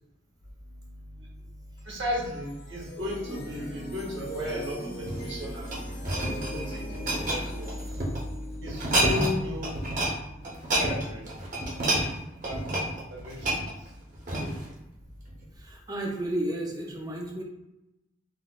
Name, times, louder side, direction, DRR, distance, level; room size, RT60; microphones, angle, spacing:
sound 1, 1.8-11.0, equal, 50° left, 0.8 m, -41 dB
voice 1, 1.9-5.7 6.5-6.8 7.1-7.7 8.6-9.7 10.7-11.3 12.4-12.6 13.1-13.6, left 1 dB, 65° right, -4 dB, 1.0 m, -34 dB
sound 2, 5.0-8.2 8.7-9.4 9.6-10.1 10.4-14.7 15.3-15.4, right 1 dB, 40° right, 0.7 m, -29 dB
voice 2, 15.6-17.4, right 1 dB, 20° right, -1 dB, 0.4 m, -32 dB
3.9 x 2.0 x 2.3 m, 0.91 s
head